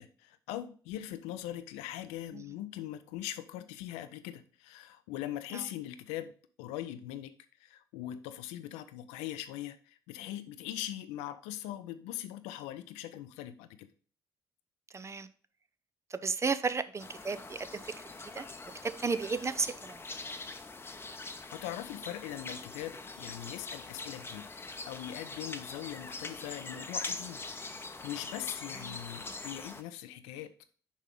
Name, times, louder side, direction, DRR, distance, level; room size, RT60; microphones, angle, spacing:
voice 1, 0.0-6.3 6.6-7.3 7.6-13.9 21.5-24.5 24.9-27.4 27.8-30.5, left 12 dB, 60° left, 0.5 m, -41 dB
voice 2, 14.9-15.3 16.1-17.9 18.2-18.4 18.8-20.0 28.8-29.0, right 5 dB, 25° right, 0.5 m, -34 dB
sound 1, 17.0-29.8, left 3 dB, 20° left, 0.8 m, -43 dB
6.2 x 5.4 x 3.7 m
figure-of-eight pair, 45°, 12 cm